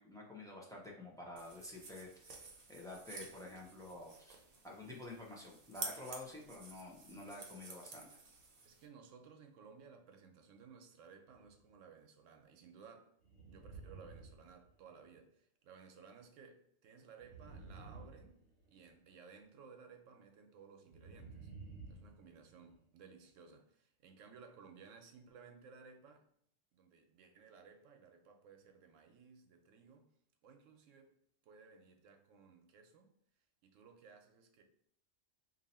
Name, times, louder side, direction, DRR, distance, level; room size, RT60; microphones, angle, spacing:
voice 1, 0.0-4.3 4.6-8.1, left 2 dB, 5° left, 0.4 m, -50 dB
sound 1, 1.4-8.9, right 3 dB, 45° right, 0.5 m, -51 dB
voice 2, 8.6-13.1 13.5-18.4 18.7-21.5 21.9-26.2 26.7-30.1 30.4-31.1 31.4-33.1 33.6-34.6, right 5 dB, 85° right, 1.0 m, -58 dB
sound 2, 11.3-11.7 13.2-15.1 17.2-18.9 20.8-22.8, right 4 dB, 80° left, 1.4 m, -53 dB
2.8 x 2.7 x 4.1 m
omnidirectional pair, 1.3 m